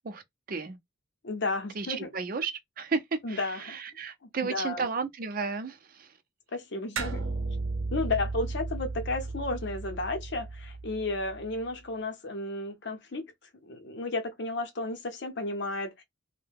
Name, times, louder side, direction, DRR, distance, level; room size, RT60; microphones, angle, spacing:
voice 1, 1.2-2.1 3.2-3.8 4.5-4.8 6.5-7.3 7.9-13.2 13.6-16.0, left 2 dB, 55° left, 0.7 m, -33 dB
voice 2, 1.8-2.5 2.8-6.1, right 4 dB, 45° right, 0.5 m, -33 dB
sound 1, 7.0-11.7, right 3 dB, 80° right, 0.7 m, -35 dB
2.7 x 2.1 x 3.5 m
head